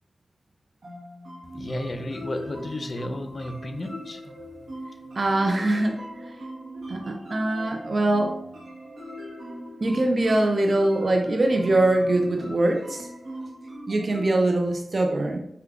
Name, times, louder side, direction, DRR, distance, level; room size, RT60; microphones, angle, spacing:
sound 1, 0.8-14.5, equal, 70° right, 0.8 m, -40 dB
voice 1, 1.4-4.2, left 1 dB, 50° left, 7 dB, 0.4 m, -33 dB
voice 2, 5.2-6.4 6.7-8.4 9.8-13.1 13.9-15.4, right 2 dB, 50° right, 3 dB, 0.4 m, -23 dB
4.9 x 2.2 x 2.3 m, 0.74 s
cardioid pair, 50°, 0 cm